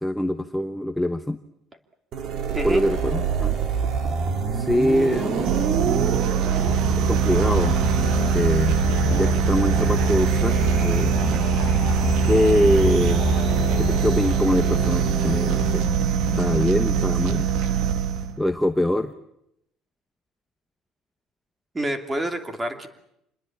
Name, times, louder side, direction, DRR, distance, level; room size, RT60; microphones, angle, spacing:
voice 1, 0.0-1.4 2.6-3.6 4.5-5.5 5.8-6.4 7.0-7.7 8.3-8.7 9.1-10.5 10.8-11.2 12.2-13.2 13.8-15.8 16.4-17.5 18.4-19.1, left 1 dB, 5° left, 8 dB, 0.9 m, -23 dB
sound 1, 2.1-15.8, right 4 dB, 50° right, 2.9 m, -26 dB
voice 2, 2.5-2.8 21.7-22.9, right 1 dB, 15° right, 6 dB, 2.8 m, -27 dB
sound 2, 5.4-18.4, right 8 dB, 65° right, 2.2 m, -23 dB
sound 3, 7.3-17.4, left 9 dB, 40° left, 1.1 m, -31 dB
27.5 x 20.5 x 8.7 m, 0.79 s
cardioid pair, 155°, 0 cm